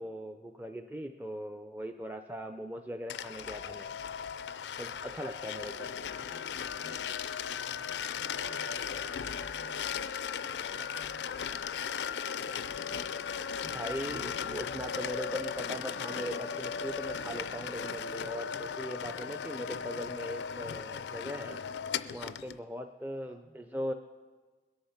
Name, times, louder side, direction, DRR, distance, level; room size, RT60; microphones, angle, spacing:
voice 1, 0.0-3.9 4.8-5.9 13.6-21.6 22.1-23.9, equal, 10° right, 6 dB, 0.4 m, -40 dB
sound 1, 3.1-22.6, left 7 dB, 85° left, 0.4 m, -37 dB
voice 2, 5.7-7.0 7.5-10.0 10.6-11.9 12.3-13.2 23.1-23.5, equal, 50° right, 5 dB, 1.5 m, -58 dB
21.0 x 8.7 x 5.8 m, 1.4 s
head